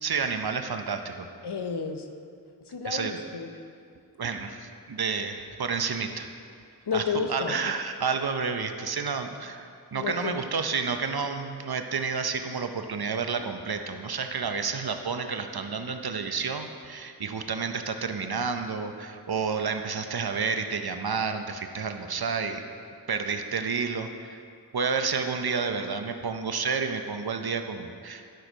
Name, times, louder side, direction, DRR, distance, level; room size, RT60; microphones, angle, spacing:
voice 1, 0.0-1.3 2.8-3.1 4.2-6.3 6.9-7.0 7.3-22.6 23.1-24.4 24.7-28.2, right 5 dB, 65° right, 7 dB, 0.8 m, -30 dB
voice 2, 1.4-2.1 2.7-3.5 6.9-7.6 9.9-10.4, left 5 dB, 75° left, 6 dB, 0.8 m, -31 dB
12.0 x 6.3 x 5.1 m, 2.4 s
wide cardioid pair, 55°, 40 cm